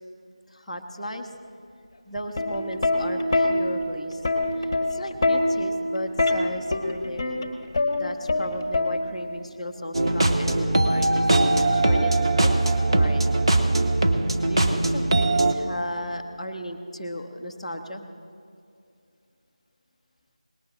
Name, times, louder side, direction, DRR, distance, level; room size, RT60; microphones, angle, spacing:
voice 1, 0.5-1.3 2.1-4.2 4.6-7.2 7.9-12.1 12.4-12.5 12.9-13.2 14.5-18.0, left 1 dB, 5° left, -10 dB, 0.5 m, -35 dB
Plucked string instrument, 2.2-9.4 10.5-10.8, left 2 dB, 20° left, 1.1 m, -25 dB
sound 1, 9.9-15.5, right 2 dB, 45° right, 1.1 m, -21 dB
19.0 x 9.5 x 7.3 m, 2.4 s
figure-of-eight pair, 165°, 4 cm